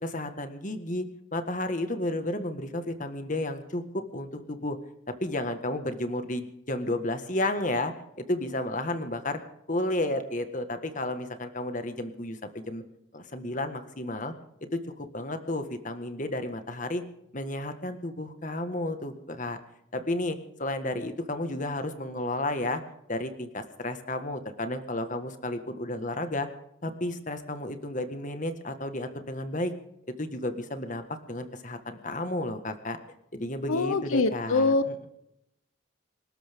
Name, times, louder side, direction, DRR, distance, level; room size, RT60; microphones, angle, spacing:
voice 1, 0.0-4.8 5.2-9.4 9.7-12.8 13.1-14.3 14.7-17.0 17.3-19.6 19.9-22.8 23.1-26.5 26.8-29.7 30.2-33.0 33.3-35.1, left 1 dB, 40° left, 8 dB, 1.7 m, -32 dB
voice 2, 33.7-34.8, left 3 dB, 85° left, 12 dB, 0.9 m, -24 dB
26.5 x 12.5 x 3.7 m, 0.80 s
head